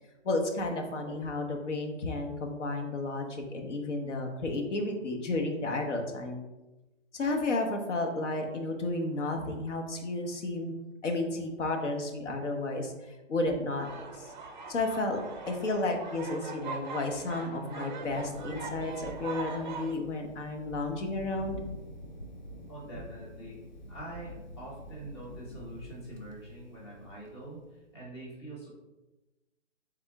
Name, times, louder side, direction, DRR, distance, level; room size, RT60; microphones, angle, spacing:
voice 1, 0.2-6.4 7.1-10.7 11.0-14.3 14.7-15.2 15.5-21.7, left 2 dB, 70° left, 3 dB, 1.0 m, -32 dB
sound 1, 13.8-19.9, right 4 dB, 40° right, 0.4 m, -41 dB
Thunder, 18.0-27.7, equal, 40° left, 0.4 m, -46 dB
voice 2, 22.7-23.6 23.9-28.8, right 1 dB, 20° left, -5 dB, 0.8 m, -44 dB
3.8 x 3.5 x 3.4 m, 1.1 s
hypercardioid pair, 170°, 37 cm